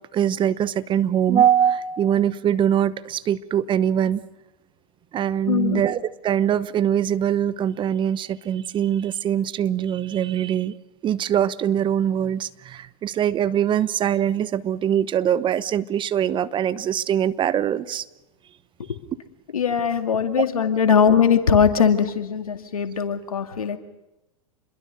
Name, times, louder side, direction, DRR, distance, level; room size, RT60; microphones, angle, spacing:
voice 1, 0.1-4.2 5.1-10.7 11.0-18.0 20.4-20.5, right 9 dB, 25° right, 16 dB, 0.9 m, -22 dB
voice 2, 5.5-5.8 18.8-19.0 19.5-23.8, left 7 dB, 80° left, 7 dB, 2.3 m, -20 dB
28.5 x 22.5 x 6.7 m, 0.99 s
hypercardioid pair, 100°, 18 cm